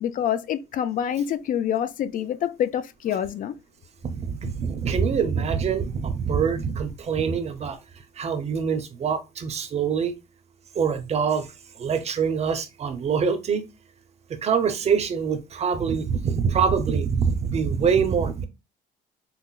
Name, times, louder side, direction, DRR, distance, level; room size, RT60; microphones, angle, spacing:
voice 1, 0.0-3.5, left 9 dB, 55° left, 0.4 m, -26 dB
voice 2, 4.0-7.8 8.2-10.1 10.7-11.5 11.8-13.6 14.4-18.5, right 6 dB, 40° right, 0.6 m, -24 dB
5.7 x 2.0 x 2.3 m
cardioid pair, 110°, 17 cm